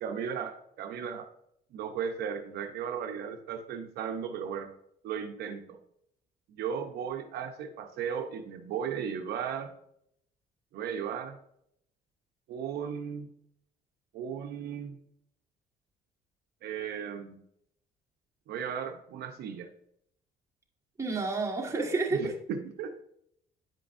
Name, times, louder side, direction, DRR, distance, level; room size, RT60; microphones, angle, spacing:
voice 1, 0.0-1.3 1.7-4.7 5.0-5.8 6.6-9.7 10.7-11.4 12.5-13.3 14.1-15.0 16.6-17.4 18.5-19.7 22.1-23.0, right 7 dB, 70° right, 5 dB, 0.7 m, -36 dB
voice 2, 21.0-22.3, right 3 dB, 15° right, -2 dB, 1.6 m, -30 dB
9.1 x 5.2 x 2.5 m, 0.73 s
cardioid pair, 110°, 17 cm